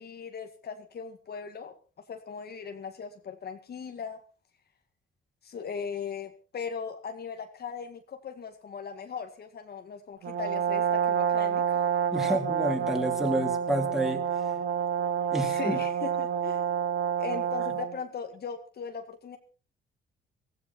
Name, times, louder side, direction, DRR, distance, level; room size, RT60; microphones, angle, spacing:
voice 1, 0.0-1.7 2.1-4.2 5.4-11.9 12.1-12.3 15.4-16.6 17.2-19.4, left 6 dB, 55° left, 6 dB, 2.0 m, -38 dB
Brass instrument, 10.2-18.0, right 8 dB, 70° right, 2.3 m, -28 dB
voice 2, 12.1-14.2 15.3-15.8, equal, ahead, 3 dB, 3.6 m, -29 dB
16.0 x 15.5 x 4.4 m, 0.37 s
cardioid pair, 90°, 20 cm